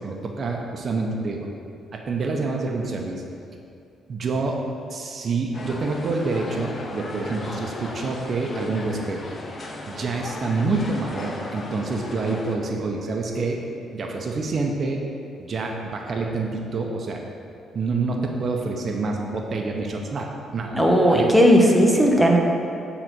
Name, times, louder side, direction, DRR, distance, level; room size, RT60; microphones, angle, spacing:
voice 1, 0.0-1.5 1.9-3.2 4.1-4.6 4.9-9.2 9.9-13.6 13.9-15.0 15.4-17.2 17.7-21.3 22.0-22.1, right 3 dB, 50° right, 1 dB, 0.8 m, -27 dB
sound 1, 5.5-12.6, left 2 dB, 40° left, 0.8 m, -36 dB
voice 2, 20.7-22.4, equal, ahead, 0 dB, 0.9 m, -16 dB
7.8 x 4.0 x 6.0 m, 2.6 s
cardioid pair, 90°, 0 cm